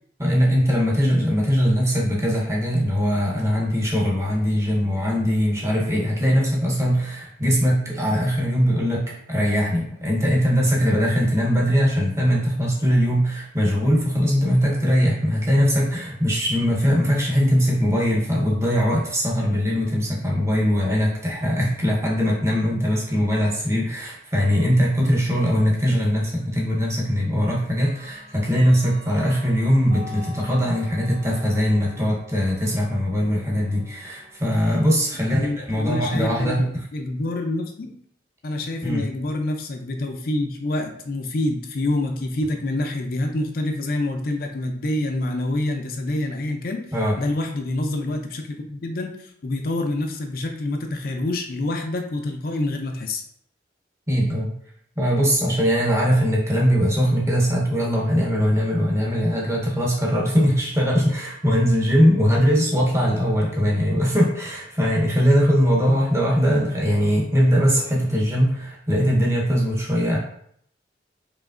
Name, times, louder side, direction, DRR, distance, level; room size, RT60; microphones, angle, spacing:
voice 1, 0.2-36.7 38.8-39.0 46.9-47.1 54.1-54.5 55.0-70.2, equal, 15° right, -3 dB, 0.9 m, -21 dB
Clock, 26.4-26.5 27.8-34.5, left 3 dB, 60° right, 1.4 m, -45 dB
voice 2, 35.4-37.9 38.4-46.9 47.2-53.2, left 1 dB, 55° left, 4 dB, 0.4 m, -27 dB
4.9 x 3.1 x 2.5 m, 0.66 s
head